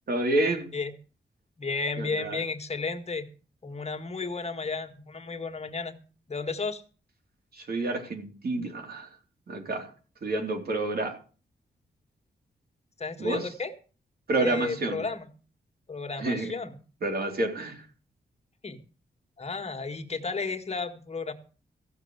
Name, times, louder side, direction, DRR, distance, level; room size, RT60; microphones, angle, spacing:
voice 1, 0.1-0.7 2.0-2.4 7.5-9.1 9.5-9.9 10.2-11.2 13.2-13.5 14.3-15.1 16.2-16.5 17.0-17.9, right 2 dB, 60° right, 4 dB, 3.7 m, -29 dB
voice 2, 1.6-3.3 3.6-5.9 6.3-6.8 13.0-13.7 14.3-15.3 15.9-16.8 18.6-18.8 19.4-21.3, left 4 dB, 35° left, 7 dB, 1.7 m, -33 dB
15.5 x 6.8 x 8.0 m, 0.38 s
wide cardioid pair, 110°, 18 cm